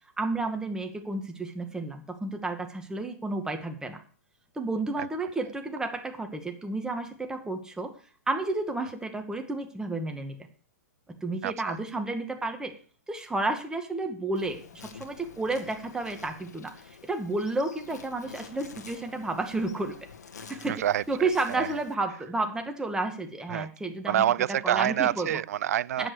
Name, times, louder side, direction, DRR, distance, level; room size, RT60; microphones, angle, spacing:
voice 1, 0.2-4.0 4.6-7.9 8.3-10.4 11.2-12.7 13.1-14.6 14.9-20.0 20.5-20.8 21.1-24.2 24.6-25.4 26.0-26.1, right 2 dB, 5° right, 2.2 m, -31 dB
voice 2, 11.4-11.8 20.7-21.8 23.5-23.7 24.1-26.1, right 11 dB, 65° right, 0.5 m, -27 dB
Insect, 14.3-21.9, left 6 dB, 80° left, 2.0 m, -48 dB
10.0 x 7.7 x 8.1 m
hypercardioid pair, 125°, 9 cm